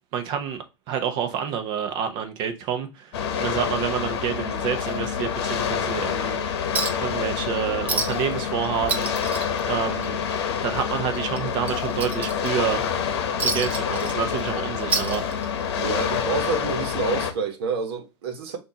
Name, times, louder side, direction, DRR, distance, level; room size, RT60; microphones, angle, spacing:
voice 1, 0.1-6.6 7.0-9.4 9.7-10.2 10.6-12.8 13.4-15.6, right 8 dB, 30° right, 0.9 m, -28 dB
sound 1, 3.1-17.3, left 7 dB, 60° left, 0.9 m, -27 dB
Chink clink, 6.7-7.1 7.4-7.5 7.9-8.3 8.6-10.3 10.7-10.8 11.3-12.7 13.4-14.5 14.8-15.7 16.8-16.9, right 4 dB, 10° right, 0.5 m, -29 dB
voice 2, 15.8-18.6, right 5 dB, 55° right, 1.3 m, -28 dB
6.3 x 2.7 x 2.8 m
hypercardioid pair, 155°, 15 cm